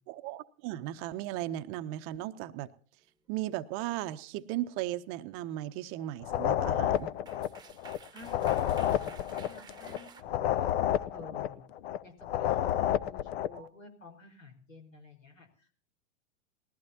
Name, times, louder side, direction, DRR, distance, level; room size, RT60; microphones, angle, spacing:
voice 1, 0.1-2.7 3.3-7.1 13.5-13.7, right 14 dB, 35° right, 11 dB, 0.8 m, -36 dB
sound 1, 4.9-5.2 6.7-6.8 6.9-10.2, right 5 dB, 10° right, 1.2 m, -52 dB
sound 2, 6.2-13.6, left 11 dB, 50° left, 0.7 m, -30 dB
voice 2, 8.1-10.7 11.1-11.7 12.0-15.8, left 3 dB, 85° left, 4 dB, 4.9 m, -51 dB
20.0 x 15.0 x 2.8 m, 0.43 s
hypercardioid pair, 105°, 38 cm